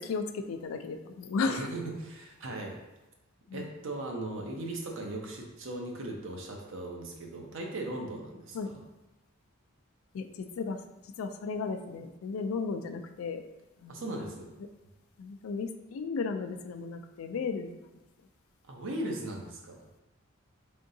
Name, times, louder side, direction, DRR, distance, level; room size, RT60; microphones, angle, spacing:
voice 1, 0.0-1.7 3.5-3.7 8.5-8.7 10.1-10.8 11.2-13.4 13.8-14.1 15.2-17.9, left 4 dB, 75° left, 8 dB, 0.3 m, -34 dB
voice 2, 1.4-2.8 3.5-8.8 13.9-14.5 18.7-20.0, right 1 dB, 65° right, 1 dB, 0.7 m, -38 dB
3.7 x 3.5 x 2.7 m, 1.0 s
head